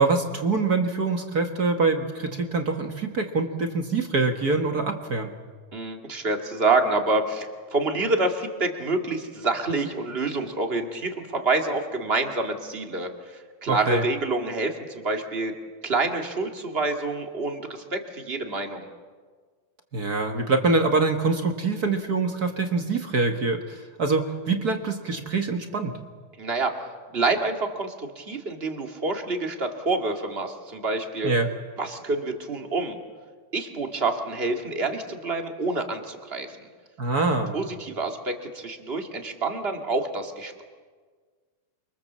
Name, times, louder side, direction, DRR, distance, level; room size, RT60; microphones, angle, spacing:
voice 1, 0.0-5.3 13.7-14.0 19.9-25.9 31.2-31.5 37.0-37.6, right 3 dB, 40° right, 4 dB, 1.6 m, -24 dB
voice 2, 5.7-15.5 15.8-18.9 26.4-26.7 27.1-31.3 31.8-33.0 33.5-36.5 37.5-40.7, right 3 dB, 20° right, 4 dB, 2.1 m, -27 dB
29.0 x 24.0 x 7.5 m, 1.5 s
omnidirectional pair, 3.4 m